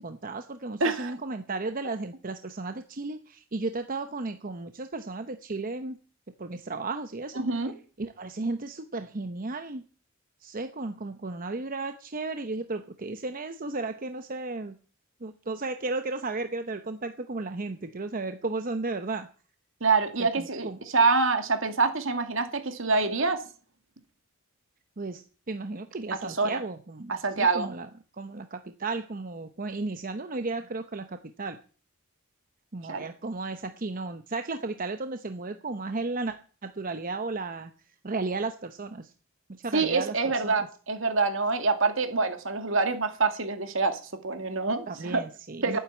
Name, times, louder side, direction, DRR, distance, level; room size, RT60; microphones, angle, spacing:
voice 1, 0.0-6.0 6.4-7.4 8.0-9.8 10.4-14.7 15.2-19.3 20.2-20.8 25.0-27.9 28.2-31.6 32.7-36.4 36.6-37.7 38.0-39.1 39.6-40.1 40.4-40.5 44.9-45.8, right 3 dB, 40° right, 8 dB, 0.9 m, -34 dB
voice 2, 0.8-1.2 7.4-7.7 19.8-23.4 26.2-26.6 27.1-27.7 32.9-33.1 39.7-45.2 45.6-45.8, right 4 dB, 65° right, 7 dB, 2.4 m, -26 dB
12.0 x 9.5 x 8.1 m, 0.39 s
head